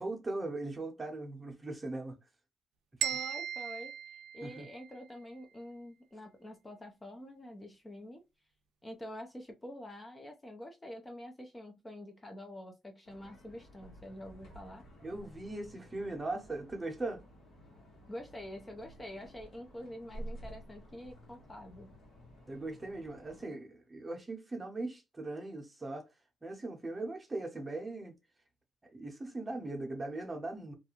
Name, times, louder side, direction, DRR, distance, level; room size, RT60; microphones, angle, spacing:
voice 1, 0.0-2.2 4.4-4.7 15.0-17.2 22.4-26.0 26.4-28.1 28.9-30.7, right 2 dB, 20° right, 0.8 m, -39 dB
voice 2, 3.0-3.9 4.3-8.2 8.8-14.9 18.1-21.9, left 1 dB, 20° left, 0.6 m, -47 dB
sound 1, 3.0-5.0, right 9 dB, 85° right, 0.4 m, -37 dB
sound 2, 13.0-23.4, equal, 70° left, 1.2 m, -52 dB
2.4 x 2.2 x 2.9 m
cardioid pair, 90°, 0 cm